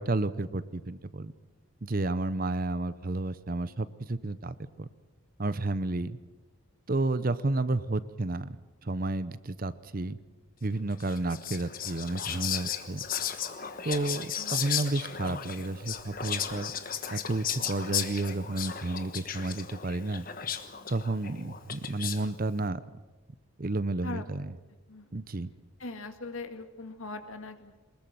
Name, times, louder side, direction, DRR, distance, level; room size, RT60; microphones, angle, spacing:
voice 1, 0.0-1.3 1.8-4.9 5.4-6.2 6.9-8.6 8.8-10.2 10.6-13.0 13.8-16.7 17.1-20.2 20.9-22.8 23.6-24.5 25.1-25.5, right 2 dB, 40° right, 15 dB, 0.7 m, -31 dB
Whispering, 11.0-22.3, left 8 dB, 40° left, 1.3 m, -35 dB
voice 2, 25.8-27.8, left 2 dB, 70° left, 7 dB, 2.1 m, -40 dB
23.5 x 21.0 x 7.7 m, 1.2 s
head